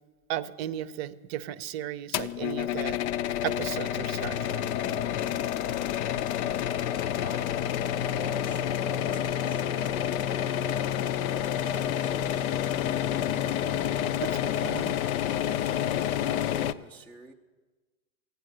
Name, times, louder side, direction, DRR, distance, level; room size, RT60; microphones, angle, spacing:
voice 1, 0.3-3.0 3.4-4.5 14.2-15.0, right 11 dB, 45° right, 15 dB, 0.6 m, -35 dB
sound 1, 2.1-16.7, left 10 dB, 75° left, 0.6 m, -29 dB
voice 2, 6.7-7.5 7.8-13.3 13.9-15.6 16.0-17.3, right 1 dB, 5° left, -3 dB, 0.4 m, -49 dB
14.0 x 9.2 x 6.6 m, 1.3 s
hypercardioid pair, 120°, 43 cm